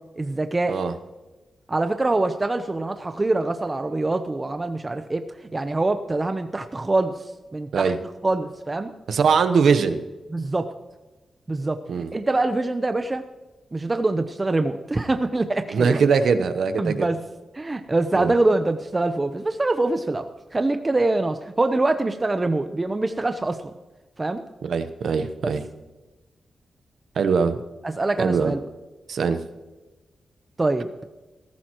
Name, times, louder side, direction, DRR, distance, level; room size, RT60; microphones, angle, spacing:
voice 1, 0.2-0.8 1.7-7.9 8.2-8.9 10.3-10.7 11.5-13.2 13.7-16.0 16.8-17.2 17.5-23.6 24.2-24.4 25.4-25.5 27.8-28.6 30.6-30.9, right 2 dB, 25° right, 7 dB, 0.8 m, -24 dB
voice 2, 9.1-10.0 11.9-12.1 15.7-17.1 18.1-18.3 24.6-25.6 27.2-27.6 28.2-28.5 29.1-29.4, right 5 dB, 80° right, 9 dB, 0.9 m, -21 dB
19.0 x 16.0 x 3.1 m, 1.2 s
wide cardioid pair, 105°, 0 cm